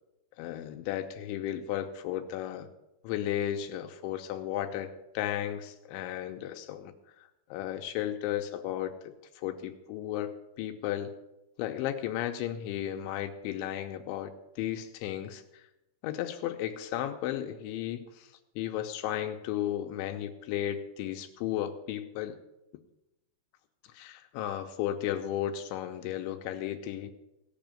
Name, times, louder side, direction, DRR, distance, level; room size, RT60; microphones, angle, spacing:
voice 1, 0.4-2.7 3.0-6.9 7.5-11.1 11.6-15.6 16.0-18.3 18.6-22.4 23.9-27.1, left 11 dB, 80° left, 6 dB, 3.0 m, -34 dB
17.5 x 6.1 x 8.9 m, 0.93 s
omnidirectional pair, 5.5 m